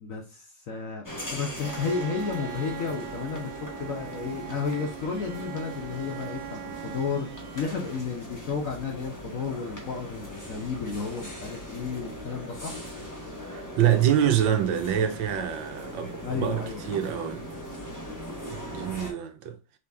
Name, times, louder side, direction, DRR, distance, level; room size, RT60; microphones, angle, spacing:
voice 1, 0.0-7.3 7.5-12.7 16.2-16.8, left 5 dB, 60° left, 0.9 m, -32 dB
sound 1, 1.0-19.1, equal, 15° left, 0.8 m, -40 dB
Bowed string instrument, 1.6-8.3, right 15 dB, 65° right, 0.8 m, -41 dB
voice 2, 13.5-17.4 18.5-19.5, right 10 dB, 85° right, 1.4 m, -26 dB
4.0 x 3.0 x 3.4 m
omnidirectional pair, 2.1 m